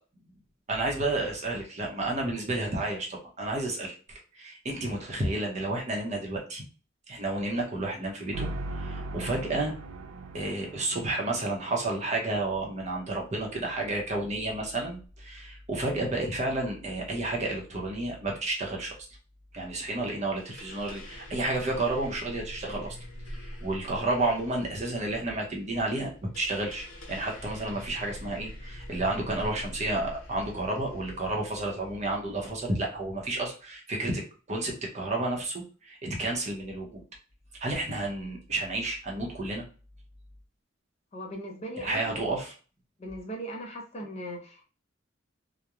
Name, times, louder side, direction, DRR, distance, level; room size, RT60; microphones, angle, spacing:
voice 1, 0.7-6.6 7.1-9.7 10.3-18.9 19.5-23.0 23.3-37.0 37.6-39.7 41.8-42.6, right 2 dB, 35° right, -1 dB, 0.7 m, -31 dB
sound 1, 8.3-12.4, right 2 dB, 80° right, 0.3 m, -39 dB
sound 2, 20.4-32.5, equal, 85° left, 0.7 m, -45 dB
voice 2, 41.1-42.2 43.0-44.6, equal, 35° left, 1 dB, 0.5 m, -38 dB
2.9 x 2.1 x 2.3 m, 0.38 s
head